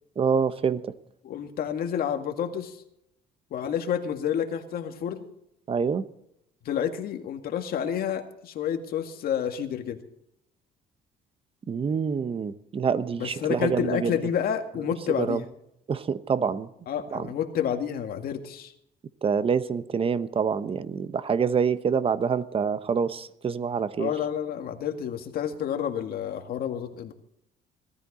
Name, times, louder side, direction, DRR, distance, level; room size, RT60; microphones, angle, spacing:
voice 1, 0.2-0.8 5.7-6.0 11.7-14.2 15.1-15.4 15.9-16.7 17.1-17.3 19.2-24.1, right 6 dB, 35° right, 14 dB, 0.9 m, -26 dB
voice 2, 1.2-2.8 3.5-5.3 6.7-10.0 13.2-15.4 16.9-18.7 24.0-27.1, left 9 dB, 65° left, 5 dB, 2.0 m, -29 dB
18.5 x 14.0 x 4.3 m, 0.79 s
cardioid pair, 110°, 17 cm